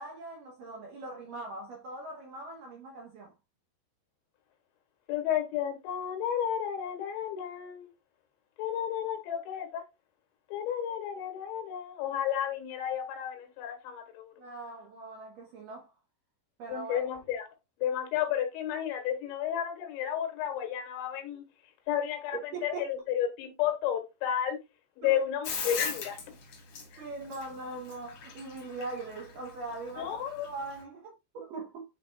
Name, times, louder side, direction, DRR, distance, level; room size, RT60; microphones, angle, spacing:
voice 1, 0.0-3.3 14.4-15.9 16.6-17.1 22.5-22.9 25.0-25.2 27.0-31.8, right 2 dB, 75° right, 2.0 m, -41 dB
voice 2, 5.1-7.9 8.6-9.8 10.5-14.3 16.7-17.5 17.8-21.4 21.9-24.6 25.0-26.2 26.9-27.0 30.0-30.5, left 9 dB, 85° left, 3.8 m, -32 dB
Bathtub (filling or washing), 25.4-30.8, left 5 dB, 55° left, 1.7 m, -38 dB
9.3 x 4.2 x 2.4 m
omnidirectional pair, 5.2 m